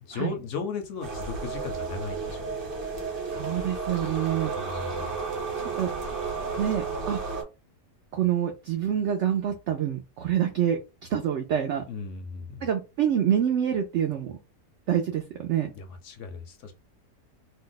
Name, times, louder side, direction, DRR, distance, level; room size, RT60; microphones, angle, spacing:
voice 1, 0.0-2.7 4.5-5.2 11.9-12.7 15.7-16.7, left 5 dB, 60° left, 0.8 m, -36 dB
sound 1, 1.0-7.4, right 4 dB, 40° right, 1.0 m, -32 dB
voice 2, 3.3-4.5 5.8-5.9 6.6-7.2 8.1-10.8 11.1-11.8 12.6-14.4 14.9-15.7, right 9 dB, 75° right, 0.6 m, -26 dB
2.8 x 2.1 x 3.8 m
omnidirectional pair, 1.7 m